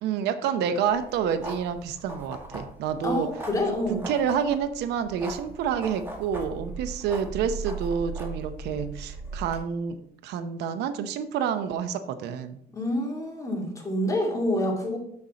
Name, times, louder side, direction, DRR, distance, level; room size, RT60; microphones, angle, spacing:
voice 1, 0.0-3.3 3.9-10.0 10.2-12.6, right 7 dB, 80° right, 11 dB, 0.7 m, -28 dB
sound 1, 0.9-9.6, right 3 dB, 15° right, 2.0 m, -39 dB
voice 2, 3.0-4.0 12.7-15.0, left 1 dB, 20° left, 0 dB, 2.3 m, -27 dB
7.1 x 6.5 x 4.2 m, 0.70 s
cardioid pair, 110°, 17 cm